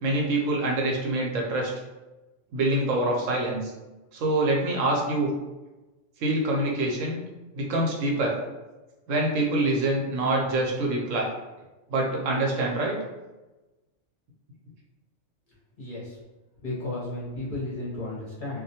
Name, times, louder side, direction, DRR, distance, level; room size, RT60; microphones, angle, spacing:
voice 1, 0.0-1.7 2.5-3.7 4.1-5.3 6.2-7.2 7.5-8.4 9.1-11.3 11.9-13.0, right 2 dB, 75° right, -1 dB, 1.0 m, -25 dB
voice 2, 15.8-16.2 16.6-18.6, left 2 dB, 50° left, -7 dB, 0.7 m, -33 dB
2.3 x 2.1 x 2.7 m, 1.1 s
omnidirectional pair, 1.3 m